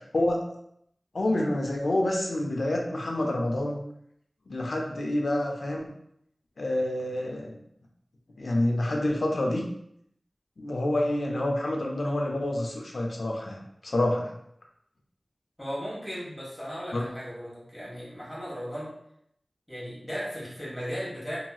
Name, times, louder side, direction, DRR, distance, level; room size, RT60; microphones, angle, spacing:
voice 1, 0.1-0.5 1.1-3.8 4.5-5.9 6.6-7.6 8.4-9.7 10.6-14.4 16.9-17.1, left 1 dB, 80° left, 0 dB, 0.5 m, -28 dB
voice 2, 15.6-18.9 19.7-21.4, equal, 5° left, -8 dB, 1.5 m, -36 dB
2.9 x 2.8 x 2.3 m, 0.74 s
wide cardioid pair, 60°, 0 cm